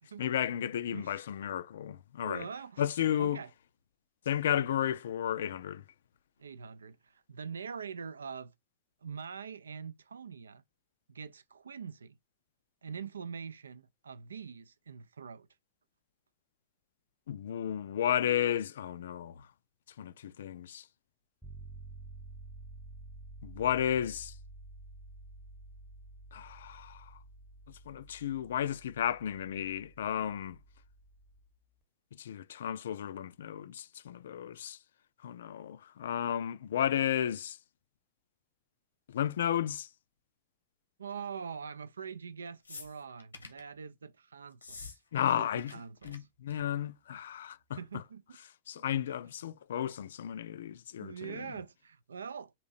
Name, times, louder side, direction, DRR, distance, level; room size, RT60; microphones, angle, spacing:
voice 1, 0.2-2.5 2.8-3.4 4.3-5.8 17.3-19.4 20.0-20.8 23.4-24.3 26.3-27.1 27.9-30.6 32.2-34.8 35.2-37.6 39.1-39.9 45.1-45.7 46.0-47.8 48.7-51.5, left 10 dB, 60° left, 0.3 m, -33 dB
voice 2, 0.9-1.2 2.2-2.9 3.2-3.5 6.4-8.5 9.0-10.6 11.1-12.2 12.8-15.5 41.0-46.3 47.7-48.4 48.7-48.8 51.0-52.5, right 6 dB, 70° right, 0.3 m, -44 dB
sound 1, 21.4-31.5, right 2 dB, 5° right, 0.8 m, -51 dB
sound 2, 42.6-43.7 44.5-45.0 45.2-45.7 46.0-46.2 46.5-46.8 47.7-47.8, left 4 dB, 80° left, 0.8 m, -47 dB
3.7 x 2.7 x 3.9 m
figure-of-eight pair, 90°, 0 cm